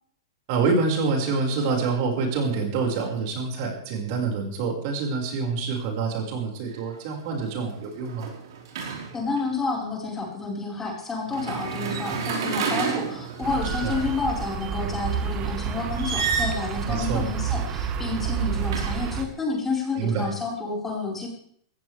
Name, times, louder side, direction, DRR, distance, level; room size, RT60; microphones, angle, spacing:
voice 1, 0.5-8.3 13.8-14.0 16.9-17.3 20.0-20.3, right 4 dB, 50° right, 1 dB, 5.4 m, -26 dB
sound 1, 6.7-6.9 7.3-9.4 11.3-14.3 15.9-16.7 17.9-19.3, right 6 dB, 75° right, 5.0 m, -31 dB
voice 2, 9.1-21.3, left 3 dB, 15° left, -2 dB, 5.0 m, -30 dB
sound 2, 13.4-19.2, right 7 dB, 30° right, 1.4 m, -29 dB
18.5 x 15.5 x 3.5 m, 0.63 s
supercardioid pair, 150°, 2 cm